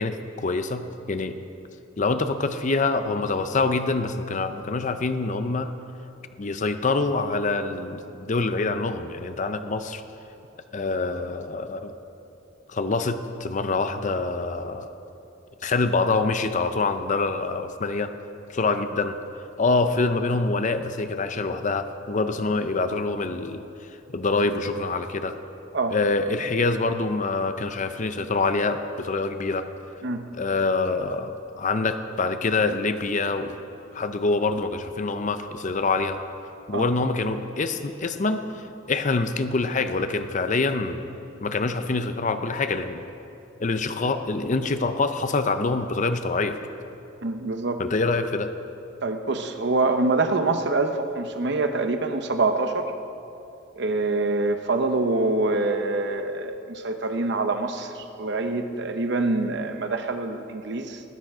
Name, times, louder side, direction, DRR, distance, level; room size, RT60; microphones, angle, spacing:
voice 1, 0.0-1.4 2.0-5.7 6.4-10.0 10.7-11.9 12.7-14.9 15.6-18.1 18.5-19.2 19.6-23.6 24.1-25.4 25.9-29.7 30.3-33.6 33.9-36.2 36.7-41.0 41.4-43.0 43.6-46.6 47.8-48.5, left 3 dB, 40° left, 9 dB, 0.6 m, -25 dB
voice 2, 47.2-47.8 49.0-52.9 53.8-61.0, right 3 dB, 60° right, 7 dB, 0.9 m, -25 dB
19.5 x 9.1 x 4.9 m, 2.8 s
head